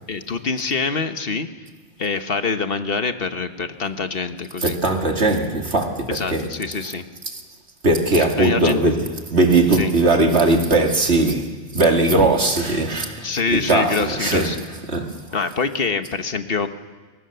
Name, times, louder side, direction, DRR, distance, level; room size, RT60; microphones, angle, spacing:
voice 1, 0.1-1.5 2.0-4.8 6.1-7.0 8.4-8.8 9.7-9.9 13.2-14.6 15.3-16.7, left 4 dB, 60° left, 1.4 m, -25 dB
voice 2, 4.6-6.5 7.8-14.6 14.9-15.2, right 2 dB, 80° right, 2.8 m, -19 dB
29.0 x 23.5 x 6.9 m
omnidirectional pair, 1.1 m